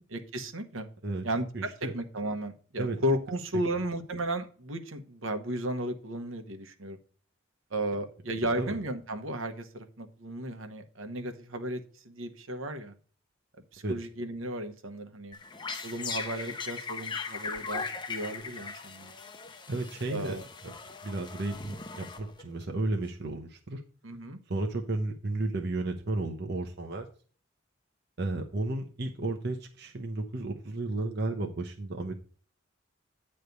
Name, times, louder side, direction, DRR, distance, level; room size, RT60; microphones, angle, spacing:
voice 1, 0.1-0.9 1.2-7.0 7.7-11.8 12.0-12.9 13.7-15.3 15.8-19.1 20.1-20.4 24.0-24.4, right 1 dB, 75° right, 6 dB, 1.1 m, -34 dB
voice 2, 1.5-1.9 2.8-3.0 8.6-8.7 13.8-13.9 19.7-20.4 20.6-20.7 21.0-23.8 24.5-27.1 28.2-32.1, right 2 dB, 55° right, 2 dB, 0.8 m, -33 dB
sound 1, 15.3-22.6, left 5 dB, 20° left, 0.6 m, -39 dB
9.2 x 3.3 x 6.7 m, 0.41 s
head